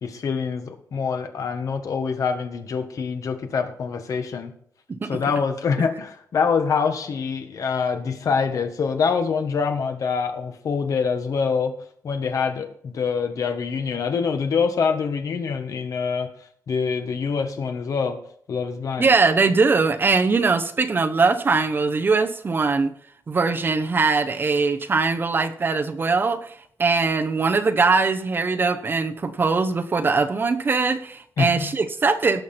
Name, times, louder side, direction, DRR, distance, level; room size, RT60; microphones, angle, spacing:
voice 1, 0.0-4.5 5.1-11.7 12.0-16.3 16.7-18.2 18.5-19.1 31.4-31.7, left 5 dB, 65° left, 1.4 m, -25 dB
voice 2, 19.0-22.9 23.3-26.5 26.8-32.4, right 4 dB, 35° right, 0.9 m, -21 dB
17.5 x 5.9 x 4.4 m
wide cardioid pair, 145°, 6 cm